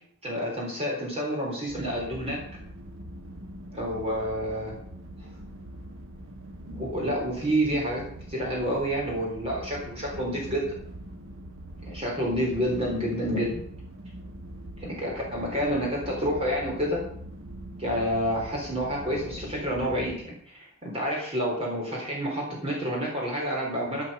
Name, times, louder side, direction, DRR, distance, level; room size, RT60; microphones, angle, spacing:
voice 1, 0.2-2.4 3.7-4.7 5.2-5.3 6.7-8.0 8.3-10.7 11.8-13.6 14.8-17.0 17.8-24.1, equal, 30° right, -3 dB, 3.9 m, -29 dB
sound 1, 1.7-20.2, right 1 dB, 65° right, 1.5 m, -43 dB
12.0 x 11.5 x 5.5 m, 0.67 s
head